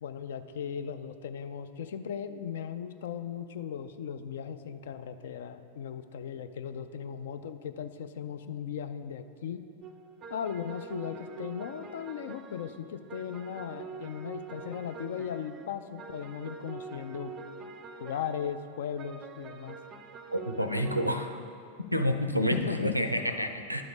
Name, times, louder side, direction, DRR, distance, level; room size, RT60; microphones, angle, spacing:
voice 1, 0.0-9.6 10.3-17.3 18.0-19.8 22.5-23.1, left 8 dB, 60° left, 10 dB, 0.4 m, -37 dB
sound 1, 9.8-21.2, right 5 dB, 30° right, 0.4 m, -45 dB
voice 2, 20.3-21.4 21.9-23.8, equal, 90° right, 7 dB, 0.4 m, -29 dB
11.0 x 3.9 x 5.1 m, 2.4 s
figure-of-eight pair, 90°, 0 cm